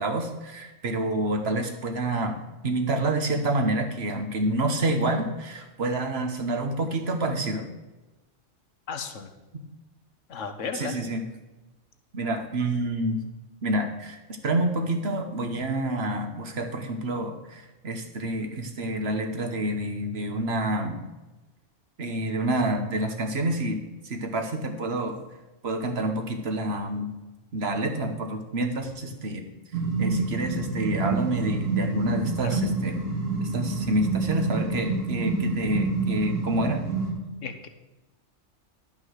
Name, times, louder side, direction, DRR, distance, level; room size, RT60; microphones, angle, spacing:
voice 1, 0.0-2.3 2.6-7.6 10.7-11.2 12.1-13.2 13.6-21.0 22.0-25.2 25.6-27.1 27.5-29.4 30.0-33.0 33.4-36.8, right 1 dB, 55° right, 5 dB, 1.4 m, -28 dB
voice 2, 8.9-9.3 10.3-11.0 32.4-32.5 37.4-37.7, left 5 dB, 80° left, 8 dB, 1.3 m, -34 dB
sound 1, 29.7-37.1, right 3 dB, 85° right, 2.5 m, -28 dB
11.5 x 5.6 x 6.4 m, 1.1 s
omnidirectional pair, 1.3 m